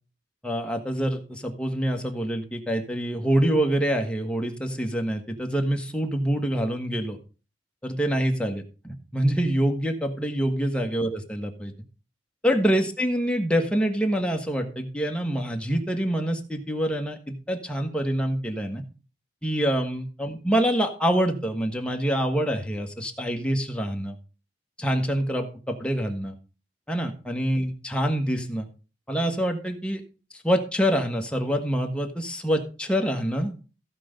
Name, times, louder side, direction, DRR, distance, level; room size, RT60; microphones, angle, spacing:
voice 1, 0.4-7.2 7.8-11.7 12.4-18.8 19.4-24.2 24.8-26.3 26.9-28.7 29.1-30.0 30.4-33.5, equal, 5° left, 3 dB, 1.4 m, -26 dB
15.0 x 5.1 x 5.1 m, 0.34 s
head